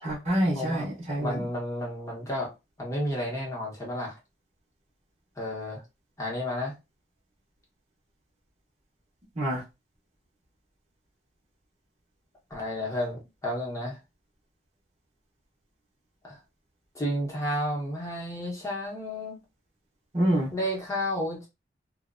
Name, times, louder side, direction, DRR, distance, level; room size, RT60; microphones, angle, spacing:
voice 1, 0.0-1.4 9.4-9.6 20.1-20.5, right 1 dB, 35° right, 0.7 m, -26 dB
voice 2, 0.5-0.8 1.2-2.5 2.8-4.2 5.4-5.8 6.2-6.7 12.5-14.0 16.2-16.4 16.9-19.4 20.5-21.5, left 1 dB, 15° left, 0.9 m, -31 dB
2.5 x 2.1 x 2.5 m
head